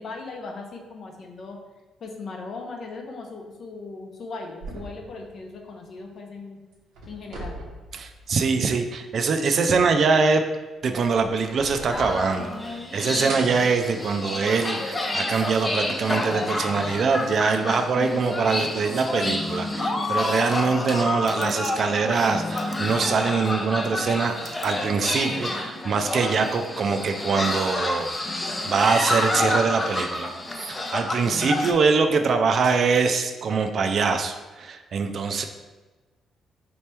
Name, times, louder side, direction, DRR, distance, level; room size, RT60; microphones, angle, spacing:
voice 1, 0.0-1.6 2.0-6.6 7.1-7.6, left 3 dB, 60° left, 2 dB, 0.7 m, -38 dB
sound 1, 4.6-6.4 6.7-8.7 9.1-9.2 10.8-12.9 13.3-15.0 15.7-15.8 16.9-17.0, right 2 dB, 90° right, 0.8 m, -41 dB
voice 2, 7.9-10.4 10.8-35.4, right 4 dB, 55° right, 6 dB, 0.4 m, -23 dB
sound 2, 11.9-31.7, left 2 dB, 25° left, 0.5 m, -29 dB
4.3 x 2.9 x 3.4 m, 1.2 s
cardioid pair, 90°, 0 cm